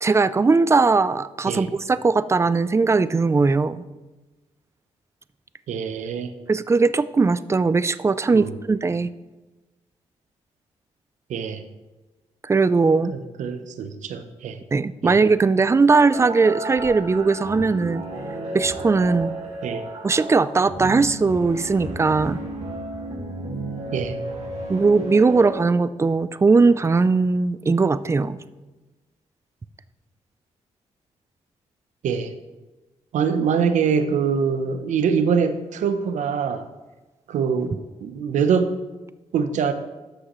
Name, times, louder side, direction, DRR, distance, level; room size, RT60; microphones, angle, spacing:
voice 1, 0.0-3.8 6.5-9.1 12.5-13.1 14.7-18.0 18.5-19.3 20.0-22.4 24.7-28.4, right 4 dB, 20° right, 15 dB, 0.4 m, -19 dB
voice 2, 5.7-6.3 8.3-8.5 11.3-11.6 13.1-14.6 15.0-15.2 19.6-19.9 23.9-24.2 32.0-32.3 33.1-36.6 37.3-38.7 39.3-39.7, right 6 dB, 80° right, 9 dB, 0.7 m, -24 dB
sound 1, 16.1-25.5, right 2 dB, 60° right, 1.9 m, -33 dB
13.0 x 6.3 x 3.1 m, 1.1 s
cardioid pair, 75°, 13 cm